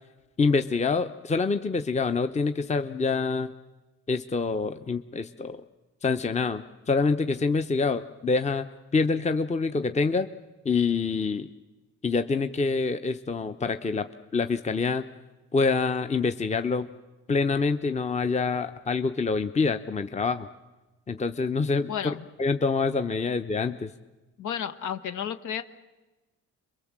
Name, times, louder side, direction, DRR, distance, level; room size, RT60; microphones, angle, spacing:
voice 1, 0.4-3.5 4.1-5.6 6.0-8.7 8.9-10.3 10.6-11.5 12.0-15.0 15.5-16.9 17.3-20.5 21.1-23.9, left 4 dB, 25° left, 9 dB, 0.8 m, -26 dB
voice 2, 21.9-22.3 24.4-25.6, left 9 dB, 75° left, 7 dB, 1.4 m, -32 dB
27.5 x 22.5 x 7.5 m, 1.1 s
cardioid pair, 90°, 30 cm